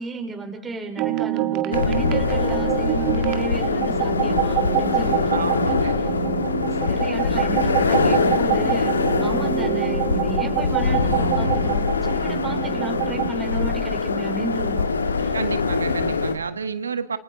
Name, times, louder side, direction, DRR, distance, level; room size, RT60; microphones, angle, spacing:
voice 1, 0.0-6.1 6.7-14.9 15.1-15.4, right 3 dB, 15° right, 3 dB, 4.0 m, -33 dB
sound 1, 1.0-13.3, right 12 dB, 45° right, 1.9 m, -26 dB
sound 2, 1.7-16.3, left 4 dB, 85° left, 1.7 m, -23 dB
voice 2, 5.3-6.0 15.3-17.2, right 5 dB, 85° right, 12 dB, 1.5 m, -29 dB
29.0 x 25.0 x 3.9 m, 0.80 s
hypercardioid pair, 110°, 0 cm